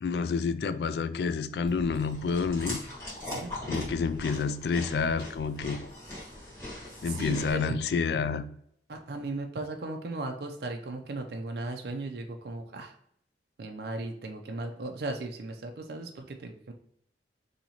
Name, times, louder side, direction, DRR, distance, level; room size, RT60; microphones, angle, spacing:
voice 1, 0.0-2.8 3.7-5.9 7.0-8.6, left 5 dB, 65° left, 12 dB, 0.3 m, -29 dB
Chewing mastication, 1.7-7.5, left 1 dB, 15° left, 1.4 m, -40 dB
voice 2, 7.0-7.6 8.9-12.9 13.6-16.7, right 2 dB, 60° right, 3 dB, 0.4 m, -37 dB
4.1 x 2.8 x 2.8 m, 0.69 s
head